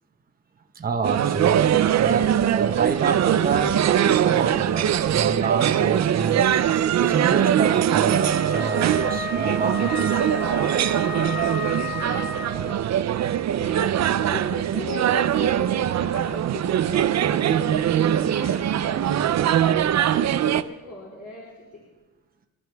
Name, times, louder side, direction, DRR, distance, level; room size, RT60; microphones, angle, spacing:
voice 1, 0.7-3.7 4.0-6.4 7.0-10.5, right 5 dB, 25° right, 4 dB, 1.1 m, -28 dB
sound 1, 1.0-20.6, right 10 dB, 50° right, 0.6 m, -22 dB
Wind instrument woodwind instrument, 8.2-12.8, left 3 dB, 5° right, 1.7 m, -32 dB
voice 2, 13.4-13.9 14.2-21.8, left 2 dB, 40° left, -4 dB, 4.4 m, -39 dB
28.5 x 12.5 x 3.5 m, 1.2 s
cardioid pair, 145°, 36 cm